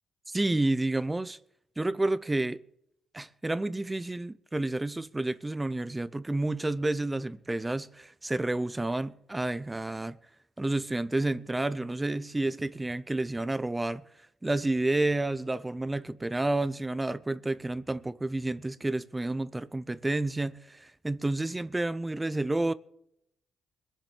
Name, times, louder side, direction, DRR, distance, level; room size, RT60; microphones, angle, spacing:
voice 1, 0.3-1.4 1.8-2.6 3.1-10.2 10.6-14.0 14.4-22.7, right 2 dB, 15° right, 0.7 m, -30 dB
21.5 x 7.4 x 7.4 m
cardioid pair, 90°, 0 cm